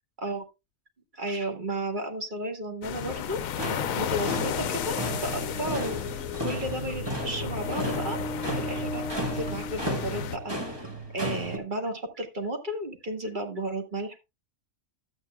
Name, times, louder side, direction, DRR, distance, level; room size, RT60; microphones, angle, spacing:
voice 1, 1.1-6.0 6.4-8.2 8.6-10.8 11.1-14.2, right 1 dB, 35° right, 3 dB, 2.0 m, -33 dB
sound 1, 2.8-10.4, left 10 dB, 75° left, 1.1 m, -34 dB
sound 2, 3.3-11.6, right 1 dB, 20° right, 1.4 m, -34 dB
sound 3, 3.8-10.7, left 2 dB, 55° left, 1.1 m, -39 dB
12.5 x 8.9 x 2.3 m, 0.24 s
omnidirectional pair, 1.5 m